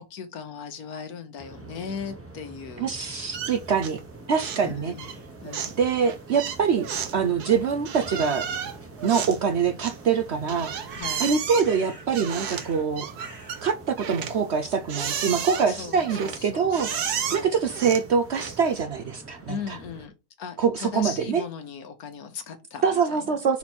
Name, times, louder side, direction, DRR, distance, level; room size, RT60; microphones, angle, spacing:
voice 1, 0.0-3.2 4.6-5.8 10.9-11.3 15.7-17.0 17.3-17.5 19.5-23.6, left 6 dB, 75° left, 1.5 m, -38 dB
sound 1, 1.4-20.1, right 2 dB, 10° right, 1.0 m, -46 dB
voice 2, 2.8-4.0 4.3-4.9 5.8-6.9 7.1-8.5 9.0-10.7 11.2-13.1 13.6-16.9 17.3-19.5 20.6-21.4 22.8-23.6, right 6 dB, 55° right, 0.8 m, -24 dB
sound 2, 3.3-4.1 4.3-4.7 5.0-18.8, right 8 dB, 90° right, 1.4 m, -34 dB
sound 3, 10.9-12.1 12.4-12.9 13.2-13.7, right 2 dB, 40° right, 2.2 m, -44 dB
5.8 x 4.3 x 4.3 m
omnidirectional pair, 1.6 m